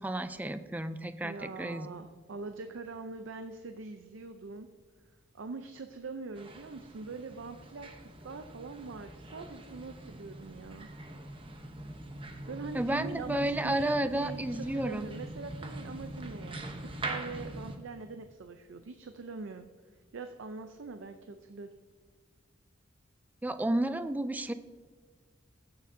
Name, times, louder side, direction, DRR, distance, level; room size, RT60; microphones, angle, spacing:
voice 1, 0.0-1.9 12.7-15.1 23.4-24.5, right 1 dB, 10° right, 11 dB, 0.3 m, -32 dB
voice 2, 1.2-4.7 5.3-10.9 12.5-19.7 19.9-21.7, right 4 dB, 70° right, 7 dB, 0.5 m, -43 dB
sound 1, 6.3-17.8, right 1 dB, 25° right, 0.8 m, -43 dB
15.0 x 6.8 x 2.7 m, 1.5 s
head